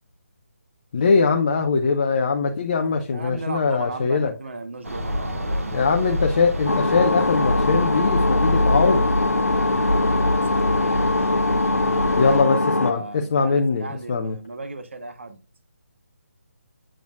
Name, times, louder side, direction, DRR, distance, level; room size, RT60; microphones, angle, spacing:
voice 1, 0.9-4.3 5.7-9.1 12.2-14.4, left 4 dB, 35° left, 0.6 m, -21 dB
voice 2, 2.8-6.0 10.0-11.3 12.1-12.3 12.6-15.4, right 3 dB, 55° right, 1.2 m, -37 dB
sound 1, 4.8-12.4, left 1 dB, 75° right, 1.9 m, -26 dB
sound 2, 6.7-12.9, left 2 dB, 85° left, 0.4 m, -22 dB
7.5 x 6.9 x 2.5 m
figure-of-eight pair, 150°, 8 cm